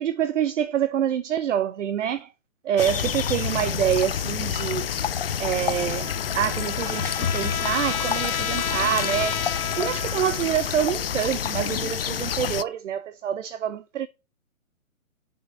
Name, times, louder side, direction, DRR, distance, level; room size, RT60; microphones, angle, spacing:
voice 1, 0.0-2.3 2.6-4.9 5.4-9.4 9.8-14.1, right 10 dB, 60° right, 0.7 m, -26 dB
sound 1, 2.8-12.6, left 8 dB, 45° left, 0.4 m, -28 dB
Trumpet, 5.5-10.6, left 7 dB, 85° left, 1.1 m, -32 dB
6.6 x 5.7 x 6.1 m
hypercardioid pair, 155°, 41 cm